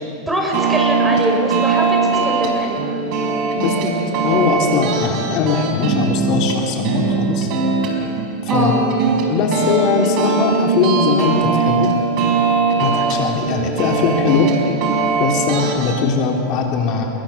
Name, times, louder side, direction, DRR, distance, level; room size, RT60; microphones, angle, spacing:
voice 1, 0.3-2.8 8.5-8.9, right 1 dB, 5° right, 0 dB, 6.4 m, -22 dB
sound 1, 0.5-16.0, right 4 dB, 50° right, 4.9 m, -20 dB
voice 2, 3.5-7.5 8.5-8.7 9.3-11.9 12.8-14.5 15.2-17.1, left 5 dB, 45° left, 1 dB, 3.3 m, -20 dB
28.5 x 22.5 x 7.2 m, 2.7 s
supercardioid pair, 135°, 0 cm